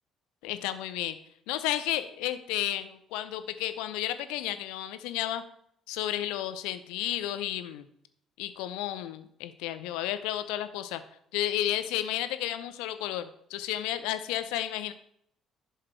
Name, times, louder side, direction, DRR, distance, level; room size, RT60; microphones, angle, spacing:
voice 1, 0.4-1.2 1.5-5.4 5.9-7.9 8.4-11.0 11.3-14.9, left 13 dB, 70° left, 11 dB, 0.7 m, -32 dB
11.0 x 6.7 x 4.4 m, 0.70 s
figure-of-eight pair, 45°, 0 cm